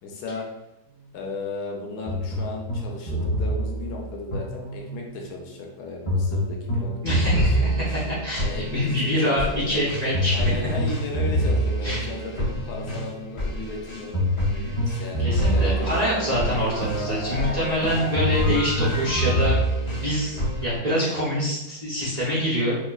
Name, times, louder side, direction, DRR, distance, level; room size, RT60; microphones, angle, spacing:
voice 1, 0.0-0.4 1.1-7.9 8.4-9.8 10.3-14.1 14.9-15.9 17.4-17.7, left 3 dB, 80° left, 0 dB, 1.2 m, -35 dB
sound 1, 2.1-5.2 6.1-20.8, equal, 30° left, 0.5 m, -26 dB
voice 2, 7.0-7.8 8.2-10.4 11.8-12.0 14.5-14.8 15.2-19.6 20.0-22.8, equal, 30° right, -9 dB, 0.9 m, -25 dB
4.3 x 2.3 x 2.3 m, 0.90 s
omnidirectional pair, 1.7 m